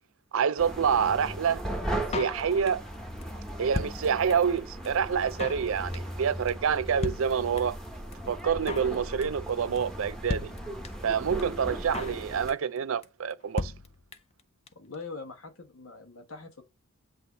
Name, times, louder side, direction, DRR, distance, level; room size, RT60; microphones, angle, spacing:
voice 1, 0.3-1.6 2.1-2.8 3.6-7.8 8.3-10.5 11.0-13.7, right 7 dB, 70° right, 0.4 m, -27 dB
sound 1, 0.6-12.5, right 1 dB, 5° left, 1.1 m, -38 dB
Drum kit, 2.1-2.9 3.2-3.3 3.5-4.6 4.8-4.9 5.1-5.7 5.9-6.2 6.5-6.6 6.8-6.9 7.0-7.9 8.1-8.2 8.4-9.0 9.2-9.5 9.8-9.9 10.0-10.1 10.3-11.1 11.4-11.5 11.7-12.2 12.5-12.8 13.0-13.1 13.3-13.4 13.6-14.4 14.7-14.8 14.9-15.0, left 3 dB, 30° left, 0.5 m, -35 dB
voice 2, 14.7-16.7, left 4 dB, 75° left, 1.4 m, -43 dB
8.3 x 2.9 x 4.0 m
head